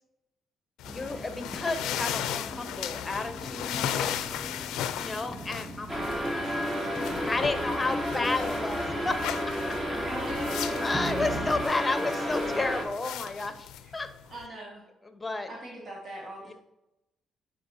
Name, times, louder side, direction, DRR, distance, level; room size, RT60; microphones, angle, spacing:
sound 1, 0.8-14.5, left 11 dB, 90° left, 0.4 m, -37 dB
sound 2, 0.8-11.7, right 1 dB, 5° right, 0.8 m, -41 dB
voice 1, 0.9-3.7 5.0-7.0 7.3-9.1 9.6-10.1 10.8-14.1 15.1-15.5, left 3 dB, 20° left, 8 dB, 0.9 m, -32 dB
voice 2, 3.7-4.2 10.0-10.9 13.8-13.9 14.3-14.9 15.5-16.5, right 1 dB, 45° right, -4 dB, 1.8 m, -41 dB
sound 3, 5.9-12.8, equal, 25° right, 2.0 m, -31 dB
9.3 x 4.8 x 2.7 m, 0.92 s
cardioid pair, 90°, 0 cm